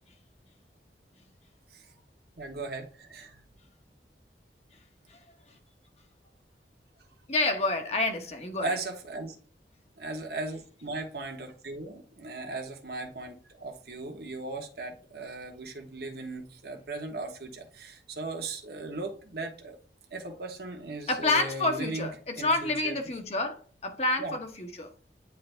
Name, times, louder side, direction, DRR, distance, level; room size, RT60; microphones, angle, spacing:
voice 1, 2.4-3.4 8.6-9.4 10.0-19.8 20.1-22.1 22.4-22.9 24.2-24.3, right 2 dB, 60° right, 1.3 m, -37 dB
voice 2, 7.3-8.8 21.1-24.9, left 2 dB, 35° left, 1.1 m, -29 dB
9.4 x 3.3 x 3.4 m
head